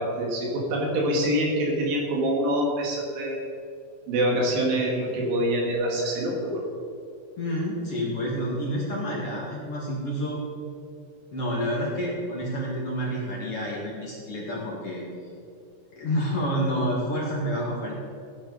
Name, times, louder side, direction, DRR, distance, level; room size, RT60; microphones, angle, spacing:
voice 1, 0.0-3.4 4.1-6.7, right 1 dB, 65° right, -1 dB, 4.0 m, -25 dB
voice 2, 7.4-10.4 11.3-15.0 15.9-18.0, equal, 45° left, -4 dB, 2.1 m, -29 dB
15.5 x 10.5 x 4.1 m, 2.5 s
omnidirectional pair, 5.4 m